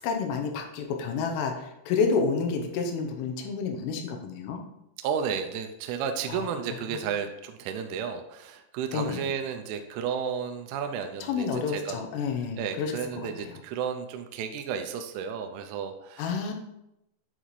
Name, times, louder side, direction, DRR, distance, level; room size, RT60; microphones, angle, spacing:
voice 1, 0.0-4.6 6.3-6.5 6.9-7.0 8.9-9.2 11.2-13.5 16.2-16.5, left 5 dB, 85° left, 3 dB, 3.4 m, -29 dB
voice 2, 5.0-12.0 12.6-16.5, right 7 dB, 85° right, 6 dB, 3.0 m, -33 dB
9.8 x 4.1 x 3.1 m, 0.85 s
omnidirectional pair, 5.7 m